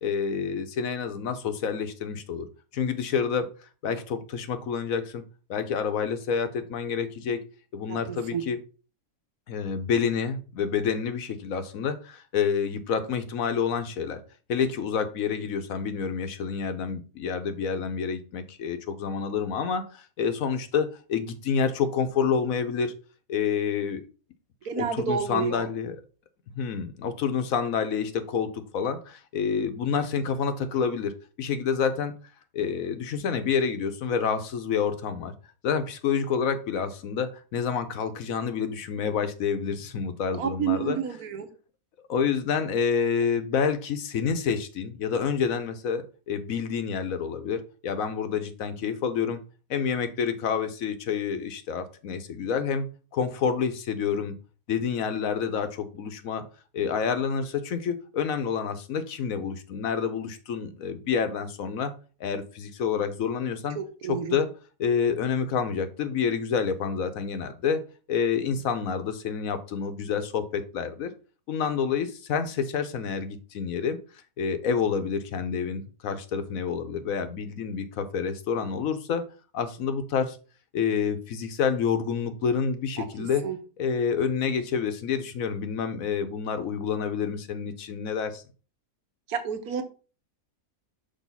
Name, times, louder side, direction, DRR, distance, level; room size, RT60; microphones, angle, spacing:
voice 1, 0.0-2.5 2.7-3.5 3.8-5.2 5.5-7.4 7.7-8.6 9.5-14.2 14.5-22.9 23.3-24.0 24.7-26.0 26.5-32.1 32.5-35.3 35.6-41.0 42.1-49.4 49.7-52.9 53.1-54.3 54.7-56.4 56.7-61.9 62.2-63.8 64.1-64.5 64.8-71.1 71.5-74.0 74.4-79.2 79.5-80.4 80.7-83.5 83.8-88.4, left 6 dB, 65° left, 9 dB, 1.2 m, -28 dB
voice 2, 7.9-8.4 24.6-25.7 40.4-41.5 63.8-64.4 83.0-83.6 89.3-89.8, right 8 dB, 75° right, 7 dB, 1.5 m, -30 dB
6.2 x 3.6 x 5.4 m, 0.36 s
omnidirectional pair, 1.6 m